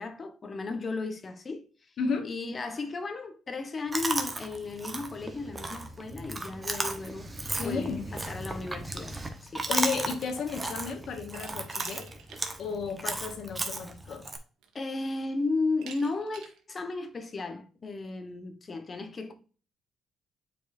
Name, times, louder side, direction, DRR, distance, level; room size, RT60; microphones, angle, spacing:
voice 1, 0.0-1.9 2.2-7.3 7.6-9.7 14.7-19.3, left 3 dB, 35° left, 1.2 m, -34 dB
voice 2, 2.0-2.3 7.6-8.1 9.7-12.1 12.6-14.3, left 4 dB, 65° left, 1.6 m, -33 dB
Chewing mastication, 3.9-14.4, right 2 dB, 20° right, 1.1 m, -35 dB
Glass, 11.3-12.4 12.8-12.9 14.1-14.2 14.6-15.0 15.8-16.6, right 6 dB, 85° right, 1.3 m, -47 dB
8.0 x 4.6 x 2.7 m
cardioid pair, 90°, 0 cm